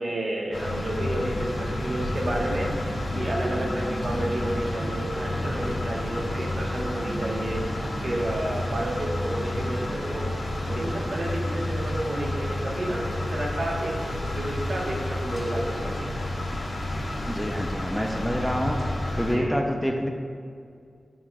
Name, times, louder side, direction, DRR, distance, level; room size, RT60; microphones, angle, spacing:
voice 1, 0.0-10.3 10.7-16.2 19.3-19.6, right 1 dB, 65° right, -2 dB, 1.3 m, -31 dB
sound 1, 0.5-19.3, left 1 dB, 75° left, 1.8 m, -30 dB
voice 2, 17.3-18.8 19.2-20.1, equal, 5° left, 2 dB, 0.6 m, -27 dB
10.5 x 6.1 x 2.4 m, 2.3 s
cardioid pair, 60°, 0 cm